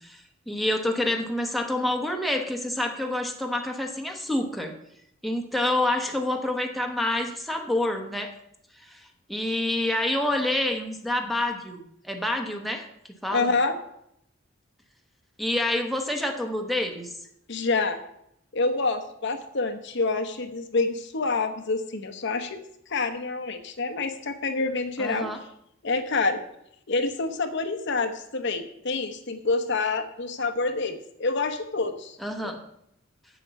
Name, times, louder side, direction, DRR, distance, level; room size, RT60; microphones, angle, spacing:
voice 1, 0.0-4.7 5.2-8.3 8.8-12.9 13.2-13.5 15.4-17.1 25.0-25.4 32.2-32.6, left 1 dB, ahead, 2 dB, 1.2 m, -28 dB
voice 2, 13.3-13.8 17.5-18.0 18.5-22.6 22.9-25.3 25.8-26.4 26.9-32.5, left 3 dB, 60° left, 7 dB, 1.0 m, -27 dB
8.2 x 7.6 x 6.9 m, 0.76 s
head